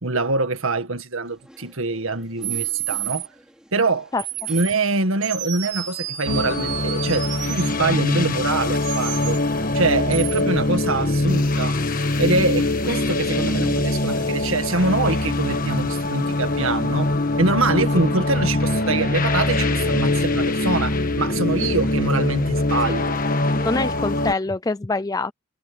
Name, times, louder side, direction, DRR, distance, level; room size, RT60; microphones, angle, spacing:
voice 1, 0.0-3.3 3.7-4.1 4.5-9.4 9.7-11.8 12.2-23.2, right 3 dB, 70° right, 1.9 m, -24 dB
sound 1, 1.2-7.9, equal, 5° right, 4.6 m, -50 dB
sound 2, 2.4-3.3 4.2-4.7 5.2-7.7 8.8-9.4 10.1-10.4, right 14 dB, 50° right, 6.0 m, -30 dB
sound 3, 6.3-24.3, left 2 dB, 40° left, 1.4 m, -23 dB
voice 2, 23.5-25.3, left 3 dB, 15° left, 0.3 m, -25 dB
head